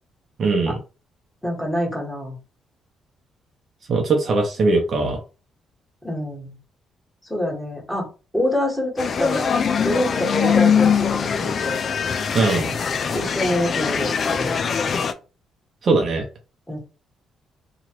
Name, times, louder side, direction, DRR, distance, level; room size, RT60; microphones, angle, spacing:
voice 1, 0.4-0.8 3.9-5.2 12.3-12.7 15.8-16.3, right 3 dB, 55° right, 3 dB, 0.7 m, -20 dB
voice 2, 1.4-2.4 6.0-6.6 7.3-8.1 8.3-9.5 9.8-11.8 13.1-14.6 16.7-16.8, left 1 dB, 5° left, -3 dB, 1.7 m, -26 dB
sound 1, 9.0-15.1, left 6 dB, 50° left, 0.4 m, -22 dB
3.0 x 2.4 x 3.0 m, 0.33 s
cardioid pair, 90°, 0 cm